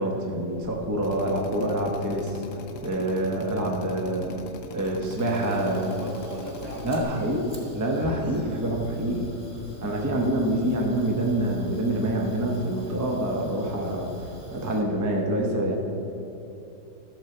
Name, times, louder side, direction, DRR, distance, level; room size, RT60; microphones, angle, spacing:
voice 1, 0.0-2.4 2.8-4.3 4.7-5.9 6.8-9.3 9.8-14.1 14.5-15.7, right 1 dB, 15° right, 0 dB, 0.7 m, -26 dB
Fire, 0.5-14.8, equal, 5° left, 1.3 m, -45 dB
Drill, 1.0-7.0, left 4 dB, 60° left, 0.9 m, -41 dB
voice 2, 2.7-3.0 5.2-7.4 8.9-9.1 9.4-10.0, right 1 dB, 65° right, -2 dB, 2.1 m, -40 dB
13.5 x 6.6 x 4.4 m, 2.8 s
omnidirectional pair, 1.7 m